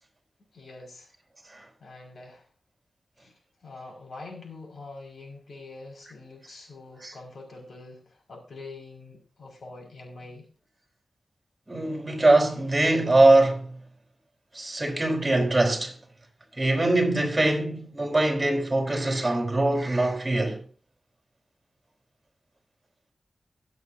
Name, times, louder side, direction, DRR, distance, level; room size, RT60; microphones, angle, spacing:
voice 1, 0.5-1.1 1.8-2.5 3.2-3.3 3.6-10.5, left 3 dB, 70° left, 5.6 m, -44 dB
voice 2, 11.7-13.8 14.5-16.0 16.6-20.6, right 2 dB, 25° right, 4.2 m, -22 dB
23.0 x 8.1 x 2.8 m
wide cardioid pair, 70°, 0 cm